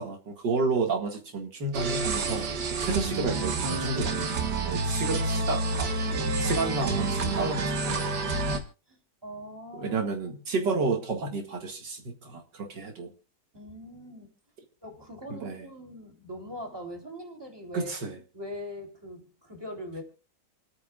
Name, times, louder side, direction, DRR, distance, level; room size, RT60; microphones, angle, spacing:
voice 1, 0.0-2.4 2.8-4.3 4.6-5.9 6.4-8.4 9.7-13.1 15.3-15.6 17.7-18.2, right 3 dB, 90° right, 3 dB, 2.6 m, -31 dB
sound 1, 1.7-8.6, right 3 dB, 70° right, 2.1 m, -28 dB
voice 2, 9.2-10.0 10.6-10.7 13.5-14.3 14.8-17.9 18.3-20.0, equal, 15° right, 1 dB, 3.5 m, -41 dB
28.0 x 9.6 x 2.4 m, 0.35 s
omnidirectional pair, 1.9 m